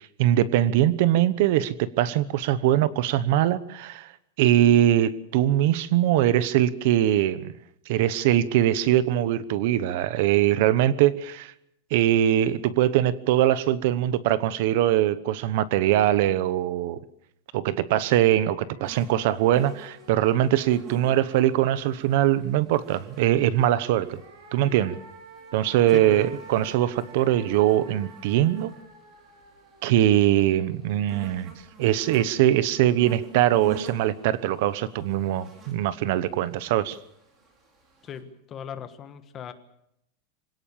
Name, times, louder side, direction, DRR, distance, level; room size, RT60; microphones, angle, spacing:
voice 1, 0.2-4.1 4.4-7.5 7.9-11.5 11.9-17.0 17.5-24.2 24.5-25.0 25.5-28.7 29.8-31.5 31.8-37.0, right 12 dB, 50° right, 16 dB, 0.9 m, -22 dB
sound 1, 17.9-18.0 18.4-22.1 23.7-31.0, right 4 dB, 75° right, 7.6 m, -50 dB
sound 2, 18.8-38.2, right 4 dB, 20° right, 4.0 m, -49 dB
voice 2, 25.9-26.3 38.0-39.5, left 8 dB, 20° left, 9 dB, 1.4 m, -38 dB
26.0 x 17.5 x 7.3 m, 0.76 s
supercardioid pair, 180°, 0 cm